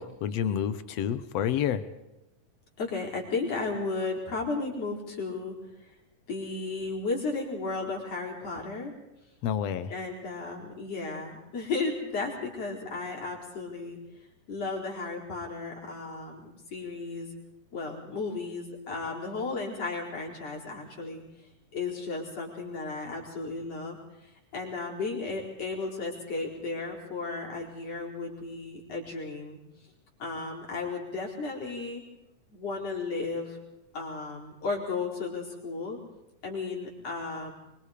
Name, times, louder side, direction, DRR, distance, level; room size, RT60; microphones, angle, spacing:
voice 1, 0.0-1.9 9.4-9.9, left 9 dB, 65° left, 13 dB, 1.7 m, -29 dB
voice 2, 2.8-5.6 5.8-6.0 6.3-8.9 9.9-14.0 14.5-17.3 17.7-21.2 21.7-29.6 30.2-32.0 32.5-33.6 33.9-36.0 36.4-37.5, left 3 dB, 45° left, -2 dB, 5.6 m, -34 dB
25.5 x 24.0 x 5.1 m, 0.92 s
omnidirectional pair, 3.9 m